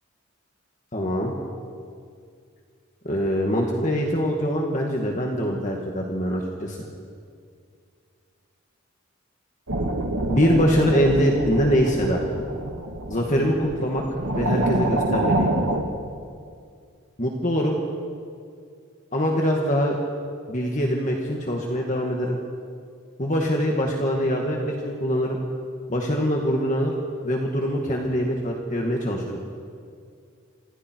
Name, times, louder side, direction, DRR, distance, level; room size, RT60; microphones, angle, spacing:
voice 1, 0.9-1.3 3.0-6.8 10.3-12.2 13.1-14.0 14.3-15.5 17.2-17.8 19.1-20.0 20.5-22.4 23.2-25.4 25.9-26.9 27.2-29.2, equal, 35° left, 0 dB, 2.1 m, -23 dB
sound 1, 9.7-15.8, right 1 dB, 85° right, 2.6 m, -26 dB
28.5 x 27.0 x 4.7 m, 2.2 s
head